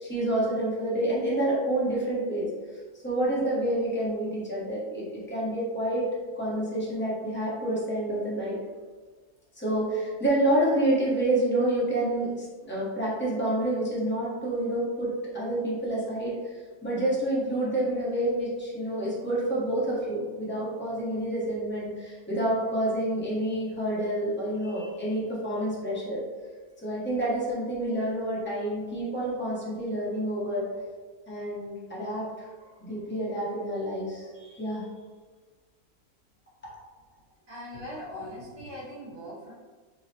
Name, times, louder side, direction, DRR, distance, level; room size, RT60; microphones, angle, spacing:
voice 1, 0.0-2.5 3.0-6.1 6.3-8.6 9.6-26.2 26.8-30.7 31.3-32.3 32.8-34.8, right 1 dB, 10° left, -8 dB, 0.5 m, -28 dB
voice 2, 37.5-39.5, left 1 dB, 80° right, -7 dB, 1.5 m, -40 dB
3.8 x 2.0 x 2.7 m, 1.4 s
omnidirectional pair, 1.6 m